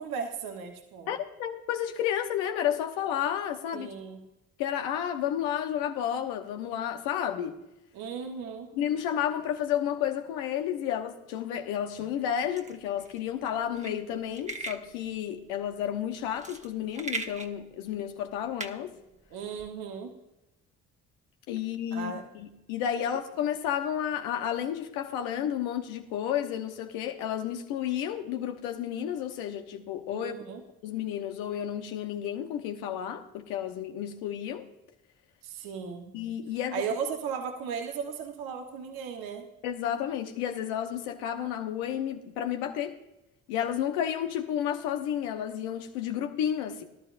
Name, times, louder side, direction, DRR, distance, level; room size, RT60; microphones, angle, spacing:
voice 1, 0.0-1.1 3.7-4.2 7.9-8.7 19.3-20.2 21.9-22.2 30.1-30.6 35.4-36.1 36.7-39.5, right 6 dB, 80° right, 1.4 m, -36 dB
voice 2, 1.1-3.9 4.6-7.6 8.7-18.9 21.5-30.3 30.8-34.7 36.1-36.9 39.6-43.0 43.5-46.8, left 10 dB, 85° left, 1.1 m, -31 dB
sound 1, 12.5-19.7, right 2 dB, 20° right, 1.2 m, -41 dB
18.5 x 12.0 x 2.6 m
hypercardioid pair, 50°, 36 cm